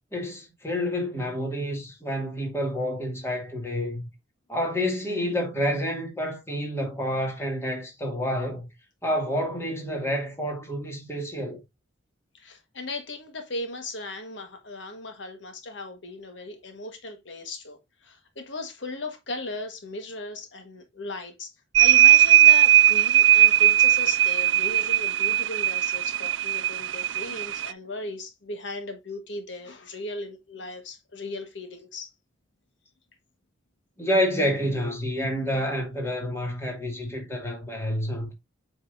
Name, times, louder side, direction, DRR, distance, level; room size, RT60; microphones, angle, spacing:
voice 1, 0.1-4.1 4.5-8.7 9.0-11.6 34.0-38.3, equal, 15° left, 2.3 m, -28 dB
voice 2, 12.4-17.8 18.0-21.5 21.8-32.1, left 2 dB, 70° left, 1.5 m, -37 dB
sound 1, 21.7-27.7, right 13 dB, 75° right, 0.3 m, -18 dB
8.1 x 5.3 x 2.6 m
head